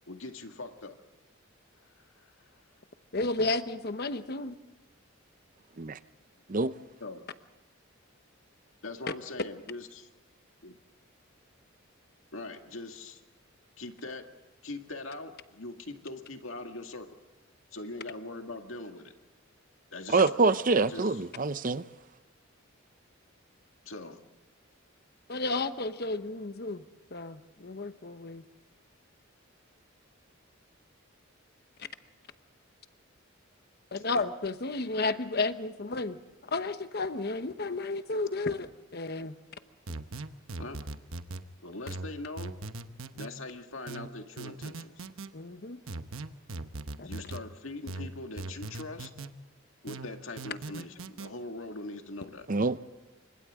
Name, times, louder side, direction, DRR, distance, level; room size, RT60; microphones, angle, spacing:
voice 1, 0.1-1.0 2.0-2.3 7.0-7.3 8.8-10.1 10.6-10.7 12.3-13.2 13.8-14.2 14.6-17.2 17.7-19.1 19.9-20.6 20.9-21.2 23.8-24.2 40.6-40.8 41.6-42.6 43.2-45.1 47.0-49.1 49.8-52.5, left 2 dB, 70° left, 5 dB, 2.1 m, -42 dB
voice 2, 3.1-4.5 25.3-26.8 27.1-28.4 33.9-39.3 45.3-45.8 47.0-47.1, left 3 dB, 50° left, 10 dB, 1.1 m, -32 dB
voice 3, 20.1-21.8 52.5-52.8, right 3 dB, 40° right, 13 dB, 0.6 m, -25 dB
sound 1, 39.9-41.4 41.9-43.3 43.9-45.3 45.9-47.4 47.9-49.3 49.9-51.3, right 2 dB, 75° right, 1.0 m, -40 dB
29.0 x 25.5 x 3.7 m, 1.1 s
head